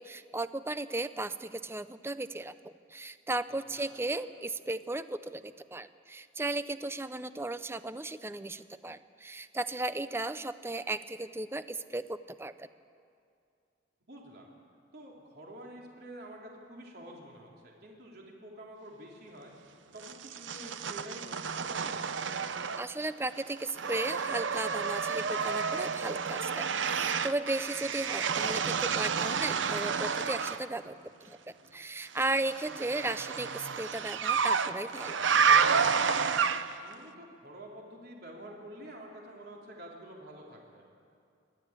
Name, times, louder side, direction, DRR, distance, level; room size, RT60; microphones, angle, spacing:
voice 1, 0.0-12.7 22.8-31.0 31.3-35.2, right 2 dB, 15° right, 13 dB, 0.6 m, -36 dB
voice 2, 3.5-3.9 14.1-14.5 14.9-19.5 19.9-22.1 27.7-27.9 36.8-40.8, right 1 dB, 55° right, -2 dB, 3.6 m, -48 dB
sound 1, 20.0-23.1 23.4-30.6 32.2-36.9, right 6 dB, 85° right, 0.8 m, -30 dB
27.0 x 12.5 x 8.9 m, 2.4 s
head